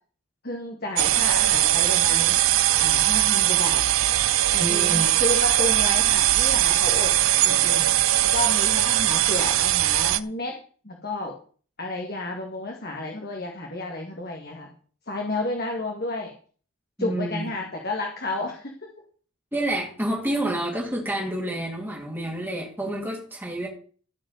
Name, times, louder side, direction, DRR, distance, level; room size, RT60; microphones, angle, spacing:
voice 1, 0.4-2.4 2.8-3.8 4.5-7.1 7.4-8.1 8.3-10.6 10.8-11.3 11.8-14.7 15.1-16.3 17.0-18.9, left 2 dB, 45° left, 0 dB, 2.0 m, -31 dB
sound 1, 1.0-10.2, right 14 dB, 70° right, 0.5 m, -20 dB
voice 2, 4.6-5.1 17.0-17.4 19.5-23.7, right 1 dB, 10° right, -3 dB, 2.7 m, -28 dB
15.0 x 5.5 x 6.6 m, 0.42 s
head